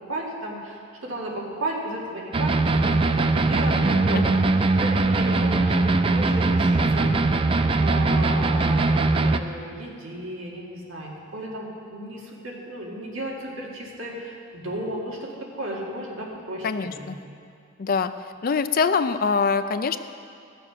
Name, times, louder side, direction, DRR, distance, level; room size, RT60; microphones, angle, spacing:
voice 1, 0.0-4.5 4.7-7.1 7.8-16.7 17.0-17.1, right 1 dB, 75° right, -3 dB, 2.2 m, -34 dB
sound 1, 2.3-9.4, right 3 dB, 25° right, 0.3 m, -21 dB
voice 2, 16.6-17.2 17.8-18.1 18.4-20.0, left 5 dB, 45° left, 11 dB, 0.4 m, -23 dB
14.5 x 6.9 x 6.2 m, 2.4 s
head